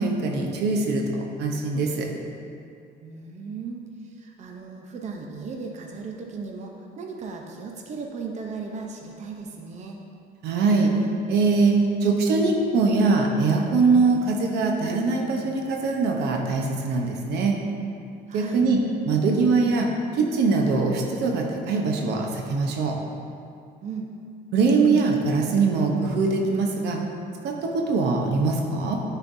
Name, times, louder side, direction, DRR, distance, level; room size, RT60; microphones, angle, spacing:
voice 1, 0.0-2.1 10.4-10.9 11.3-17.6 18.3-18.8 19.0-23.0 24.5-27.0 27.4-29.0, right 4 dB, 80° right, 1 dB, 0.9 m, -22 dB
voice 2, 3.0-10.0 18.3-18.6 23.8-24.1, right 4 dB, 45° right, 1 dB, 0.7 m, -36 dB
10.5 x 4.5 x 2.7 m, 2.5 s
cardioid pair, 110°, 17 cm